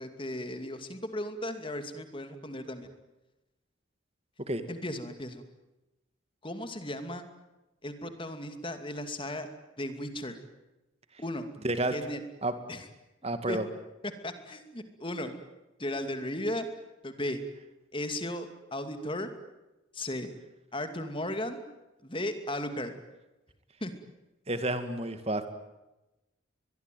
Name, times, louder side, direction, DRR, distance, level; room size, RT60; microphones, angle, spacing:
voice 1, 0.0-2.9 4.7-5.4 6.4-7.2 7.8-9.5 9.8-10.4 11.2-11.5 11.9-12.2 12.7-12.9 13.5-13.6 14.2-15.3 15.8-16.7 17.0-17.4 17.9-19.3 19.9-20.3 20.7-21.6 22.0-22.9 23.8-23.9, left 1 dB, 25° left, 8 dB, 2.5 m, -35 dB
voice 2, 11.6-12.0 12.4-12.5 13.2-13.7 24.5-25.5, right 1 dB, 30° right, 9 dB, 2.3 m, -30 dB
23.5 x 22.0 x 9.3 m, 1.0 s
head